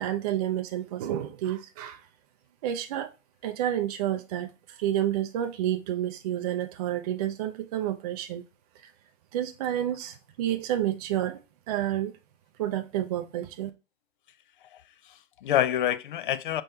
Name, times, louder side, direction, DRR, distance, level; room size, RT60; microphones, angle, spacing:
voice 1, 0.0-2.1 2.6-3.1 3.4-8.4 8.8-8.9 9.3-11.4 11.7-12.1 12.6-13.7, right 11 dB, 30° right, 0.5 m, -30 dB
voice 2, 14.6-16.6, left 11 dB, 45° left, 0.4 m, -28 dB
5.3 x 3.7 x 2.7 m
hypercardioid pair, 135°, 38 cm